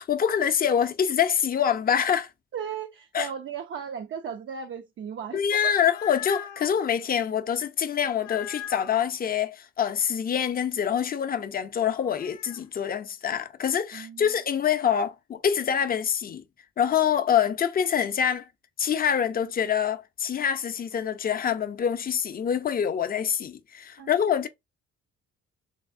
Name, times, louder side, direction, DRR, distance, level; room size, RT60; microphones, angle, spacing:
voice 1, 0.0-2.3 3.1-3.3 5.3-16.4 16.8-18.4 18.8-24.5, left 8 dB, 30° left, 0.5 m, -25 dB
voice 2, 2.5-5.7 13.9-14.3 24.0-24.1, right 7 dB, 45° right, 0.4 m, -36 dB
sound 1, 5.6-6.7 8.1-9.1 11.9-12.6, left 10 dB, 75° left, 0.6 m, -40 dB
3.3 x 2.0 x 2.4 m
cardioid pair, 90°, 30 cm